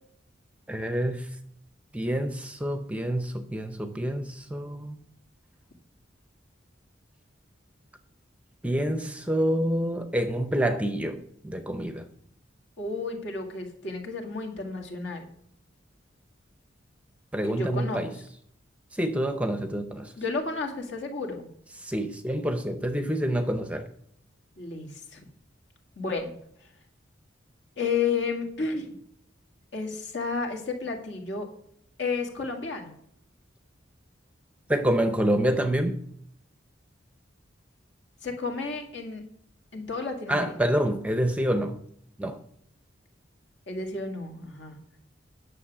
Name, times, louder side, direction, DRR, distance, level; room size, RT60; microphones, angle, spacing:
voice 1, 0.7-1.3 1.9-5.0 8.6-12.1 17.3-18.1 18.9-20.1 21.8-23.9 34.7-36.0 40.3-41.8 42.2-42.4, right 1 dB, 5° right, 0.6 m, -27 dB
voice 2, 12.8-15.3 17.4-18.1 20.2-21.5 24.6-25.2 26.0-26.3 26.6-26.7 27.8-29.0 29.7-31.5 32.0-32.9 38.2-39.2 39.7-40.5 43.7-44.8, left 4 dB, 65° left, 2.0 m, -32 dB
10.0 x 6.7 x 6.0 m
head